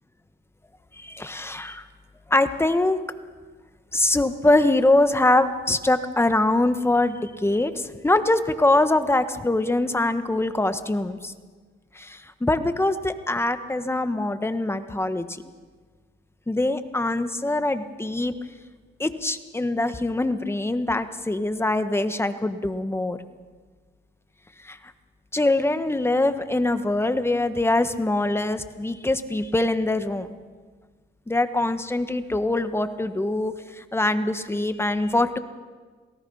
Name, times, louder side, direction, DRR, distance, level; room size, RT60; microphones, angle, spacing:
voice 1, 1.0-1.9 2.3-3.0 3.9-11.3 11.9-15.4 16.5-18.3 19.0-23.2 24.6-24.8 25.3-30.3 31.3-35.4, left 2 dB, 10° left, 10 dB, 1.4 m, -23 dB
28.0 x 18.0 x 5.6 m, 1.5 s
cardioid pair, 90°, 20 cm